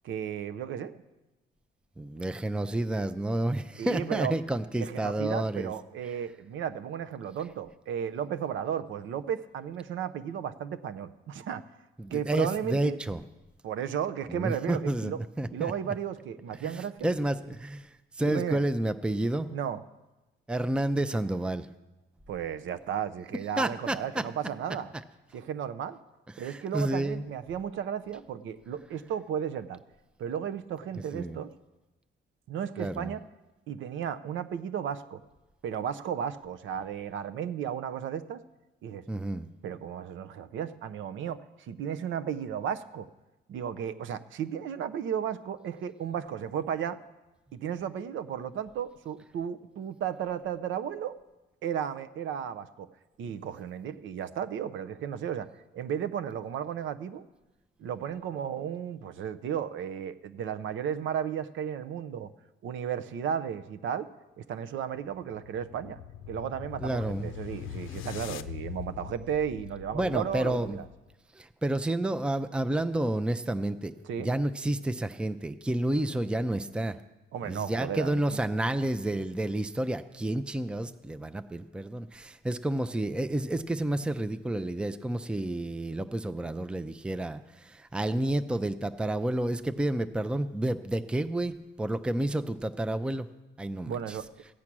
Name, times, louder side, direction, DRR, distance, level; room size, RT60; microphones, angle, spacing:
voice 1, 0.0-0.9 3.8-4.3 4.8-11.7 12.1-13.0 13.6-15.2 15.5-17.1 18.3-18.6 19.5-19.8 22.3-24.9 25.3-26.0 26.4-29.8 30.2-31.5 32.5-33.2 33.7-35.2 35.6-38.4 38.8-39.0 39.6-43.1 43.5-47.0 47.5-51.2 51.6-52.9 53.2-57.2 57.8-62.3 62.6-64.1 64.4-66.0 66.3-70.8 74.0-74.3 77.3-78.4 93.8-94.3, right 8 dB, 75° right, 12 dB, 0.7 m, -34 dB
voice 2, 2.0-5.7 12.0-13.2 14.3-15.7 16.6-19.5 20.5-21.7 23.6-24.2 26.3-27.2 31.1-31.4 32.8-33.1 39.1-39.5 66.8-67.3 69.9-70.8 71.3-73.9 74.2-77.0 77.4-93.3 93.6-94.2, right 1 dB, 5° right, 11 dB, 0.5 m, -30 dB
sound 1, 64.7-71.1, left 10 dB, 90° left, 0.5 m, -42 dB
15.0 x 8.5 x 6.1 m, 1.1 s
cardioid pair, 90°, 20 cm